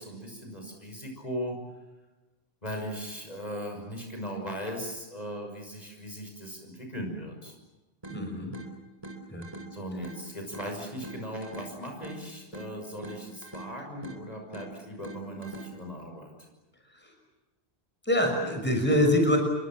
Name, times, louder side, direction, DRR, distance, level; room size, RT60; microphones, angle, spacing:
voice 1, 0.0-1.6 2.6-7.6 9.7-16.3, equal, 35° left, 2 dB, 6.1 m, -38 dB
sound 1, 8.0-16.0, right 2 dB, 25° right, 4.3 m, -45 dB
voice 2, 8.1-8.5 9.3-9.5 18.1-19.4, left 1 dB, 10° left, 3 dB, 6.2 m, -24 dB
29.5 x 24.0 x 7.4 m, 1.1 s
omnidirectional pair, 1.1 m